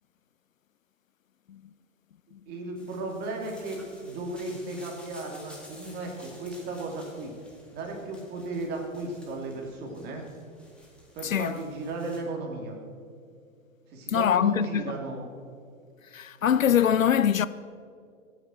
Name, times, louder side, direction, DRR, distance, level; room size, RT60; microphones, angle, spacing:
voice 1, 2.5-7.3 7.7-10.2 11.1-12.8 13.9-15.3, right 2 dB, 25° right, 2.6 m, -35 dB
sound 1, 2.8-12.2, left 1 dB, ahead, 1.9 m, -53 dB
voice 2, 11.2-11.6 14.1-14.8 16.1-17.5, left 9 dB, 70° left, 0.6 m, -23 dB
24.0 x 9.4 x 4.4 m
figure-of-eight pair, 120°, 42 cm